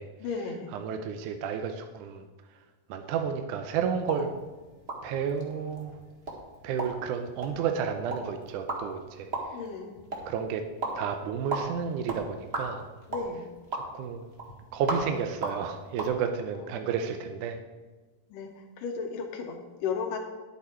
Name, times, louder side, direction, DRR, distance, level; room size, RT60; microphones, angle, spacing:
voice 1, 0.2-0.7 9.5-10.0 13.1-13.4 18.3-20.2, left 5 dB, 80° left, 2 dB, 2.6 m, -34 dB
voice 2, 0.7-2.2 2.5-2.6 2.9-4.3 5.0-6.0 6.6-9.6 10.3-10.6 11.0-12.9 13.7-14.3 14.7-17.6, right 7 dB, 80° right, 6 dB, 2.1 m, -31 dB
sound 1, 4.0-16.1, right 2 dB, 40° right, 0.9 m, -38 dB
10.5 x 8.4 x 4.5 m, 1.3 s
omnidirectional pair, 3.8 m